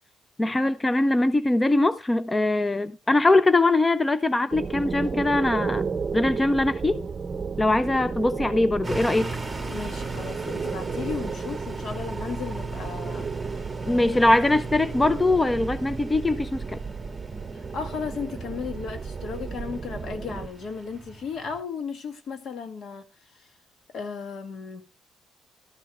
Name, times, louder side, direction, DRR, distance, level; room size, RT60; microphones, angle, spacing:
voice 1, 0.4-5.8 6.1-7.1 7.6-9.3 13.9-16.8, left 2 dB, 20° left, 0.5 m, -22 dB
sound 1, 4.5-20.5, right 5 dB, 35° right, 0.8 m, -33 dB
sound 2, 8.8-21.6, right 2 dB, 10° right, 1.9 m, -38 dB
voice 2, 9.7-14.2 17.5-23.5 23.9-24.8, left 5 dB, 65° left, 1.6 m, -35 dB
13.0 x 4.5 x 6.3 m
cardioid pair, 90°, 0 cm